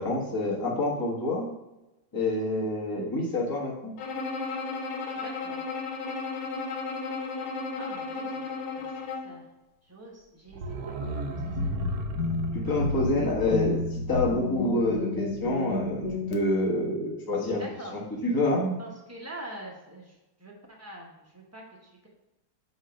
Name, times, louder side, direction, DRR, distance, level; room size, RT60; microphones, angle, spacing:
voice 1, 0.0-1.5 2.1-3.9 12.5-17.6 18.2-18.8, left 1 dB, 15° left, -3 dB, 0.9 m, -27 dB
Bowed string instrument, 4.0-9.4, left 4 dB, 80° left, 1.6 m, -34 dB
voice 2, 5.2-5.6 7.7-8.3 8.6-9.5 9.8-11.7 17.6-17.9 18.8-22.1, right 1 dB, 10° right, -2 dB, 0.7 m, -45 dB
sound 1, 10.5-15.3 15.5-15.6, right 2 dB, 70° right, 0.7 m, -37 dB
sound 2, 11.4-16.4, left 3 dB, 60° left, 1.2 m, -31 dB
8.0 x 3.1 x 5.1 m, 0.97 s
omnidirectional pair, 2.2 m